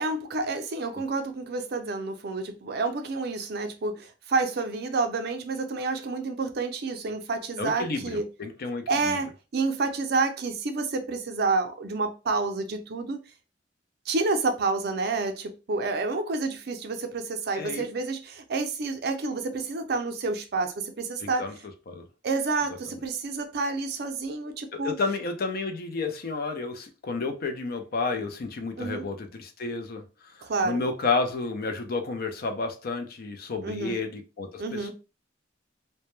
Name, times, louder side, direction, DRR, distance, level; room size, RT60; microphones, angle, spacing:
voice 1, 0.0-8.3 8.9-13.2 14.1-21.5 22.2-25.0 28.8-29.1 30.4-30.9 33.6-34.0 34.6-34.9, right 3 dB, 55° right, 0.4 m, -29 dB
voice 2, 7.6-9.2 17.6-17.9 21.2-21.5 21.9-22.0 22.9-23.0 24.7-34.9, left 3 dB, 50° left, 0.4 m, -31 dB
2.1 x 2.1 x 3.0 m
head